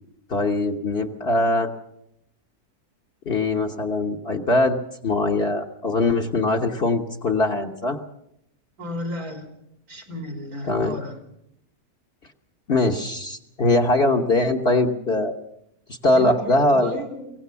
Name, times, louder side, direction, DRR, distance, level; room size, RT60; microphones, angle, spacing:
voice 1, 0.3-1.7 3.2-4.8 5.0-8.0 10.7-11.0 12.7-15.3 15.9-17.0, left 2 dB, 45° left, 1 dB, 1.3 m, -21 dB
voice 2, 8.8-9.5 9.9-11.2 16.1-17.3, equal, 85° right, 4 dB, 4.1 m, -33 dB
23.5 x 17.5 x 6.9 m, 0.79 s
omnidirectional pair, 1.6 m